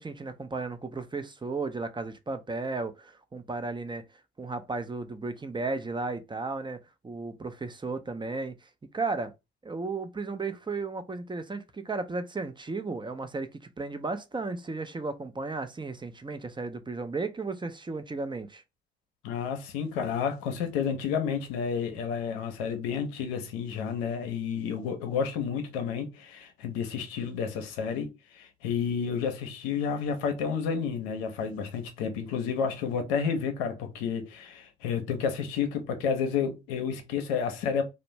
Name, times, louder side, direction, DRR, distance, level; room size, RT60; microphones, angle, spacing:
voice 1, 0.0-4.0 4.4-6.8 7.0-8.7 8.9-9.3 9.6-18.6, right 3 dB, 15° right, 0.5 m, -34 dB
voice 2, 19.2-37.8, left 6 dB, 80° left, 0.6 m, -31 dB
2.5 x 2.1 x 3.0 m
hypercardioid pair, 50°, 29 cm